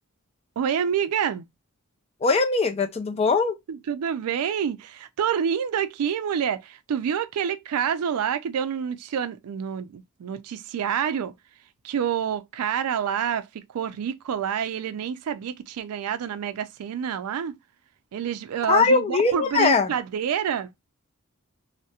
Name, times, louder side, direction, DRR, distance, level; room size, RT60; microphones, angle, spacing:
voice 1, 0.6-1.5 3.7-11.3 11.8-13.5 13.7-17.6 18.1-20.7, right 8 dB, 85° right, 0.3 m, -27 dB
voice 2, 2.2-3.6 18.7-19.9, left 4 dB, 25° left, 0.3 m, -21 dB
2.3 x 2.0 x 2.7 m
head